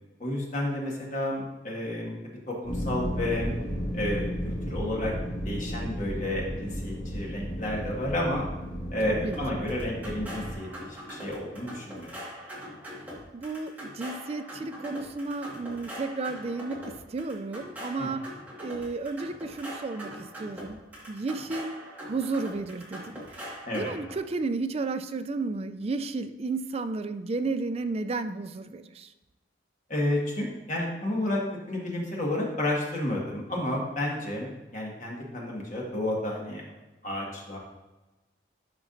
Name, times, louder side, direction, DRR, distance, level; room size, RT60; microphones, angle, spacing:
voice 1, 0.2-2.2 2.5-3.5 3.9-5.1 5.4-8.5 8.9-12.1 18.0-18.1 23.7-23.9 29.9-31.4 31.7-36.6 37.0-37.6, left 1 dB, 40° left, -3 dB, 1.7 m, -31 dB
sound 1, 2.6-10.5, equal, 15° left, 2.0 m, -34 dB
voice 2, 9.0-9.8 13.3-18.3 18.6-20.8 21.1-23.5 23.7-29.1, right 3 dB, 30° right, 10 dB, 0.3 m, -33 dB
sound 2, 9.3-24.2, equal, 10° right, 1.7 m, -42 dB
11.5 x 4.9 x 2.6 m, 1.1 s
head